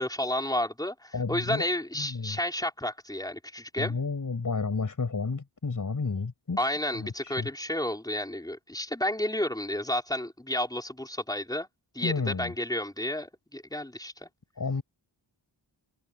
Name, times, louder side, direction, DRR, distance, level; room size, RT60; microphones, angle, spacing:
voice 1, 0.0-3.9 6.6-11.7 11.9-14.3, left 1 dB, 10° left, 4.9 m, -31 dB
voice 2, 1.1-1.6 1.9-2.4 3.8-6.7 6.9-7.5 12.0-12.5 14.6-14.8, left 4 dB, 40° left, 7.3 m, -31 dB
wide cardioid pair, 155°, 47 cm